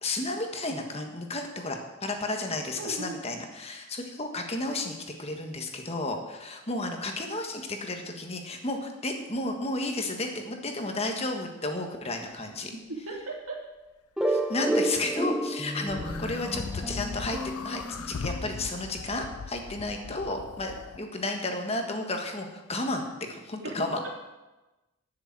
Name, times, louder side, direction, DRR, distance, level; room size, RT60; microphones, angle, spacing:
voice 1, 0.0-12.7 14.3-24.0, left 2 dB, 25° left, 4 dB, 1.5 m, -33 dB
voice 2, 2.8-3.2 12.9-13.6 14.5-14.6 23.6-24.1, right 2 dB, 70° right, -2 dB, 3.3 m, -37 dB
sound 1, 14.2-18.7, right 1 dB, 5° right, 0.7 m, -31 dB
sound 2, 15.9-21.0, left 5 dB, 85° left, 0.5 m, -39 dB
12.0 x 6.7 x 8.7 m, 1.1 s
head